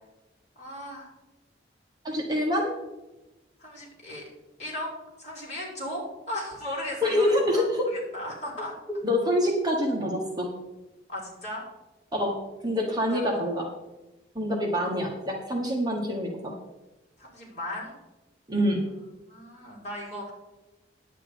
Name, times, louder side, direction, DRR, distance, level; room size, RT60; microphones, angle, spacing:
voice 1, 0.6-1.1 3.6-4.2 4.6-4.9 5.2-7.2 7.9-8.7 11.1-11.6 13.1-13.4 17.2-18.0 18.7-20.3, left 1 dB, 35° left, -4 dB, 4.4 m, -36 dB
voice 2, 2.0-2.7 7.0-7.9 9.0-10.5 12.1-13.7 14.3-16.5 18.5-18.8, left 1 dB, 20° right, 0 dB, 1.3 m, -26 dB
10.0 x 8.4 x 5.1 m, 1.0 s
head